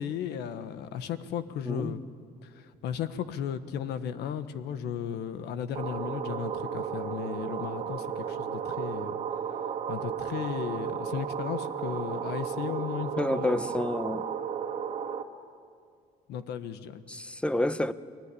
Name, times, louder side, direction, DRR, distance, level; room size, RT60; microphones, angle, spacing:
voice 1, 0.0-2.0 2.4-9.2 9.9-13.6 16.3-17.0, left 8 dB, 80° left, 1.4 m, -35 dB
sound 1, 5.8-15.2, right 7 dB, 40° right, 1.9 m, -34 dB
voice 2, 13.2-14.3 17.1-17.9, left 1 dB, 5° left, 0.9 m, -29 dB
28.5 x 20.0 x 10.0 m
cardioid pair, 110°, 17 cm